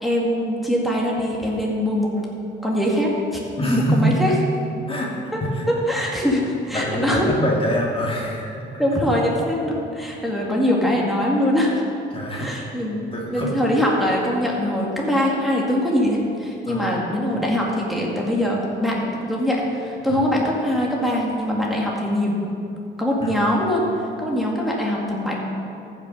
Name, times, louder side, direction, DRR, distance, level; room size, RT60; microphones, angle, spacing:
voice 1, 0.0-2.1 2.6-4.3 5.7-7.3 8.8-11.8 12.3-13.0 13.3-22.4 23.0-23.8 24.2-25.3, equal, ahead, -4 dB, 2.0 m, -22 dB
voice 2, 3.6-4.2 4.9-5.2 5.6-5.7 6.7-8.8 12.1-12.5 13.1-13.5 16.7-16.9 20.1-20.2 23.2-23.4, equal, 30° left, -2 dB, 1.9 m, -25 dB
14.5 x 5.8 x 5.4 m, 2.6 s
cardioid pair, 90°, 20 cm